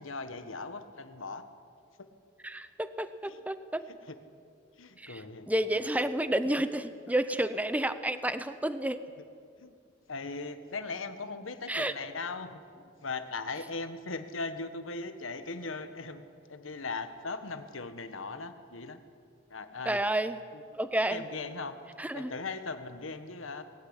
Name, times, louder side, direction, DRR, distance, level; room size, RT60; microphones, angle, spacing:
voice 1, 0.0-1.5 2.0-2.1 3.3-3.4 4.1-4.2 4.8-5.5 9.6-9.7 10.1-19.0 19.5-20.0 20.5-20.6 21.1-21.8 22.1-23.6, left 3 dB, 90° left, 10 dB, 1.5 m, -39 dB
voice 2, 2.4-3.8 5.0-5.2 5.5-9.0 11.7-11.9 19.9-20.4 20.8-21.2 22.0-22.3, right 1 dB, 10° right, 12 dB, 0.7 m, -30 dB
20.5 x 15.0 x 9.9 m, 2.3 s
head